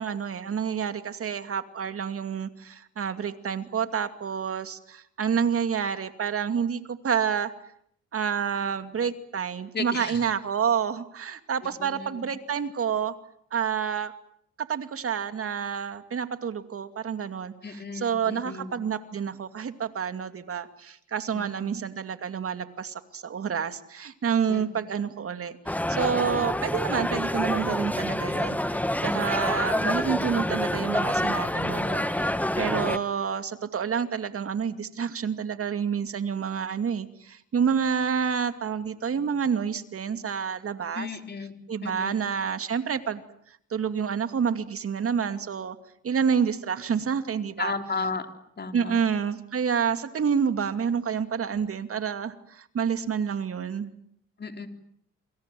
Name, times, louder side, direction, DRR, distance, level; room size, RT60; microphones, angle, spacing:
voice 1, 0.0-7.5 8.1-13.1 13.5-14.1 14.7-41.1 41.7-43.2 43.7-45.8 46.0-47.7 48.7-53.9, right 7 dB, 50° right, 10 dB, 2.5 m, -28 dB
voice 2, 9.7-10.2 11.8-12.3 17.6-18.8 21.3-21.8 24.5-24.6 40.9-41.6 41.8-42.2 47.6-48.3 48.6-49.0 54.4-54.7, left 4 dB, 35° left, 6 dB, 3.9 m, -34 dB
sound 1, 25.7-33.0, left 1 dB, 5° left, 1.7 m, -27 dB
27.5 x 26.0 x 7.7 m, 0.66 s
cardioid pair, 90°, 30 cm